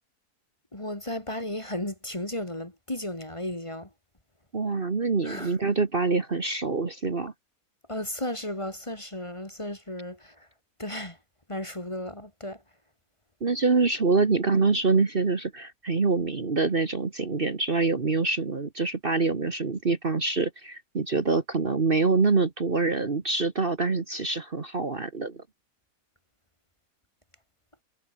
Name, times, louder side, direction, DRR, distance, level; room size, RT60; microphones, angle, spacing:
voice 1, 0.7-3.9 5.2-5.6 7.9-10.5 10.8-11.2 11.5-12.6, left 1 dB, 20° left, 2.3 m, -34 dB
voice 2, 4.5-7.3 13.4-25.4, right 4 dB, 35° right, 1.7 m, -25 dB
omnidirectional pair, 1.7 m